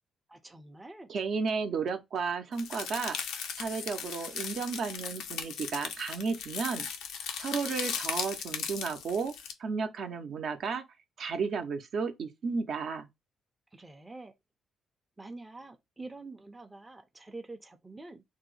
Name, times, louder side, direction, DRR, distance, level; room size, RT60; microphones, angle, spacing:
voice 1, 0.3-1.1 13.7-14.3 15.2-18.2, right 2 dB, 15° right, 0.5 m, -46 dB
voice 2, 1.1-3.2 3.6-6.9 7.4-9.3 9.6-10.8 11.2-13.1, right 5 dB, 60° right, 0.6 m, -33 dB
sound 1, 2.6-9.5, left 7 dB, 85° left, 0.6 m, -37 dB
2.7 x 2.0 x 3.8 m
cardioid pair, 90°, 0 cm